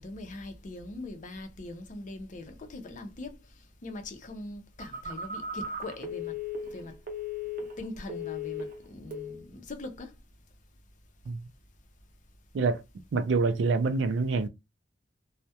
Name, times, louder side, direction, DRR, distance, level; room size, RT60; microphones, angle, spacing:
voice 1, 0.0-3.4 3.8-6.3 6.7-6.9 7.8-10.1, left 2 dB, 45° left, 0.5 m, -41 dB
Telephone, 4.8-8.8 9.1-9.4, left 3 dB, 50° right, 0.7 m, -36 dB
voice 2, 13.1-14.5, right 4 dB, 80° right, 0.4 m, -26 dB
2.2 x 2.0 x 2.7 m
head